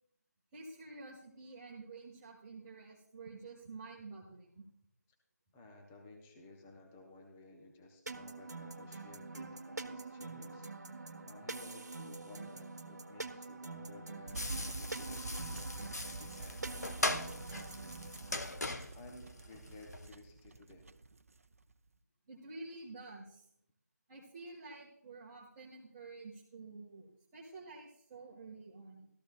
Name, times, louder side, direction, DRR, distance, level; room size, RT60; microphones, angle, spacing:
voice 1, 0.5-4.6 22.3-23.5 24.1-29.1, right 3 dB, 15° right, -5 dB, 1.2 m, -50 dB
voice 2, 5.5-10.7 11.2-17.9 19.0-20.9, left 2 dB, 5° left, 1 dB, 0.4 m, -56 dB
sound 1, 8.1-18.3, right 3 dB, 70° right, 1.1 m, -46 dB
sound 2, 14.3-21.9, right 2 dB, 55° right, 0.5 m, -47 dB
sound 3, 14.4-20.1, left 2 dB, 65° left, 1.0 m, -40 dB
13.5 x 13.5 x 2.2 m, 0.68 s
figure-of-eight pair, 165°, 9 cm